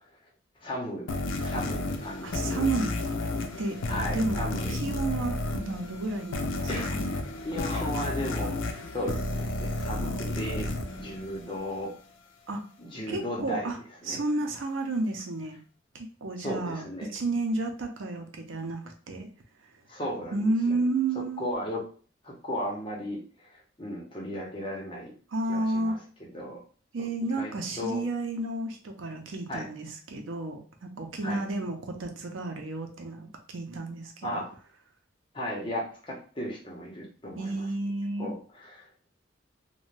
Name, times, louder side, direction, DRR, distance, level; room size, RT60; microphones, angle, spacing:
voice 1, 0.6-1.1 1.4-2.7 3.9-4.7 6.7-11.9 12.8-13.7 14.0-14.2 16.4-17.1 19.9-20.8 21.4-21.8 22.2-25.1 25.5-26.0 26.3-26.6 27.0-27.1 27.4-28.0 29.5-29.7 31.2-31.4 34.2-34.5 35.3-37.7 38.2-39.1, equal, 25° left, -2 dB, 0.8 m, -36 dB
sound 1, 1.1-11.9, left 2 dB, 75° left, 0.5 m, -32 dB
voice 2, 2.2-2.9 3.6-3.8 4.1-7.0 12.5-12.6 13.1-13.8 14.1-15.6 15.9-16.8 17.1-19.3 20.3-21.5 25.3-26.0 26.9-34.4 37.4-38.3, right 2 dB, 80° right, 3 dB, 0.6 m, -31 dB
2.5 x 2.2 x 3.2 m, 0.40 s
head